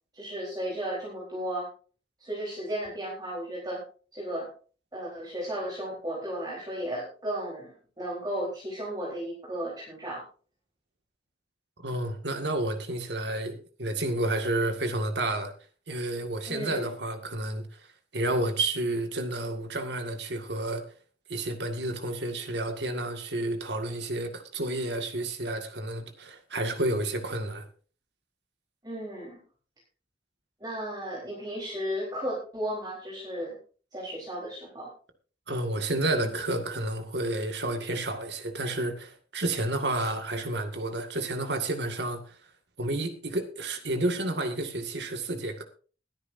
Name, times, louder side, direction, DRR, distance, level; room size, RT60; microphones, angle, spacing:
voice 1, 0.1-1.7 2.2-3.8 4.1-4.5 4.9-10.2 16.5-16.9 28.8-29.4 30.6-33.6 33.9-34.9, equal, 20° right, 4.0 m, -34 dB
voice 2, 11.8-15.5 15.9-17.8 18.1-20.8 21.3-27.6 35.5-42.4 42.8-45.6, right 2 dB, 70° right, 2.0 m, -30 dB
21.5 x 9.8 x 2.7 m
head